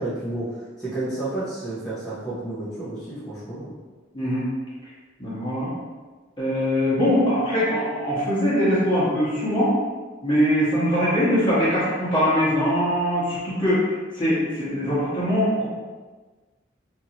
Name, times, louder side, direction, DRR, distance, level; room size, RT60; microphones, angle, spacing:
voice 1, 0.0-3.7, right 2 dB, 5° left, -14 dB, 0.7 m, -31 dB
voice 2, 4.1-4.5 5.2-5.7 6.4-9.7 10.2-15.7, equal, 25° left, -9 dB, 1.1 m, -22 dB
2.8 x 2.5 x 2.8 m, 1.3 s
head